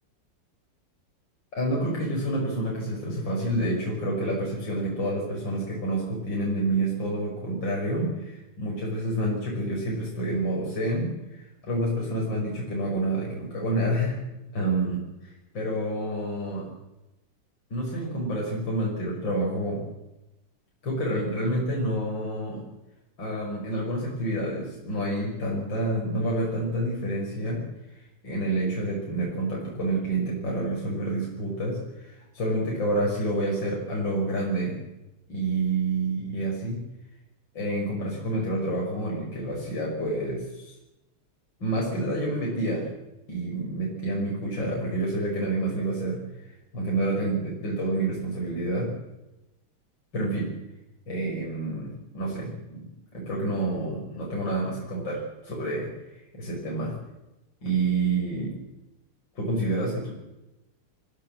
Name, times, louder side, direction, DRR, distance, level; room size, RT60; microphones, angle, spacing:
voice 1, 1.6-14.2 14.5-15.0 15.5-16.7 17.7-19.8 20.8-22.6 23.2-27.6 27.9-34.8 35.3-36.8 37.5-40.7 41.6-42.9 43.3-48.9 50.1-50.5 51.1-55.9 56.3-56.9 57.6-58.5 59.4-60.1, right 1 dB, 55° left, -3 dB, 6.6 m, -28 dB
26.0 x 16.5 x 7.7 m, 0.95 s
omnidirectional pair, 2.4 m